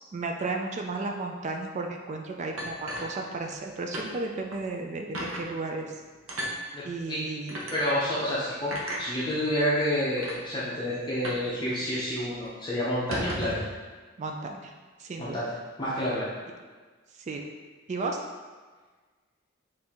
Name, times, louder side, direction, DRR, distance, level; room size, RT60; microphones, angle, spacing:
voice 1, 0.1-5.9 6.8-7.6 14.2-14.7 15.0-15.4 17.3-17.4 17.9-18.2, right 3 dB, 35° right, 3 dB, 0.3 m, -33 dB
sound 1, 2.6-3.7 3.9-4.1 4.5-4.6 5.1-5.4 6.3-6.6 7.5-7.7 8.7-9.0 9.8-9.9 10.2-10.4 11.2-11.5 11.8-11.9 12.2-12.4 12.9-13.7, right 1 dB, 85° right, 0.7 m, -34 dB
voice 2, 6.7-7.2 7.7-8.7 9.0-13.6 15.2-15.5 15.8-16.3, equal, 20° left, -8 dB, 0.6 m, -29 dB
4.3 x 2.6 x 3.5 m, 1.4 s
head